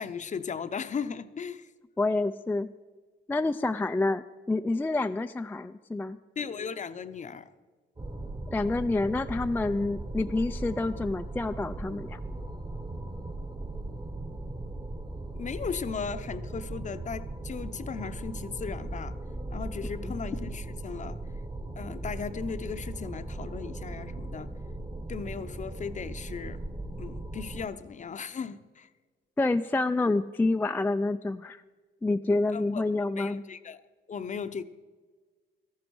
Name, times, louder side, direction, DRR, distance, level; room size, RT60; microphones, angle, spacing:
voice 1, 0.0-1.7 6.4-7.5 15.3-19.2 19.5-21.2 21.8-24.5 25.1-26.6 27.0-28.9 32.5-33.8 34.1-34.6, left 6 dB, 40° left, 12 dB, 0.7 m, -37 dB
voice 2, 2.0-2.7 3.3-6.2 8.5-12.2 20.0-20.1 29.4-31.6 32.0-33.4, left 2 dB, 10° left, 8 dB, 0.3 m, -28 dB
sound 1, 8.0-27.7, right 2 dB, 20° right, 1.1 m, -38 dB
13.5 x 11.5 x 4.6 m, 1.4 s
cardioid pair, 90°, 20 cm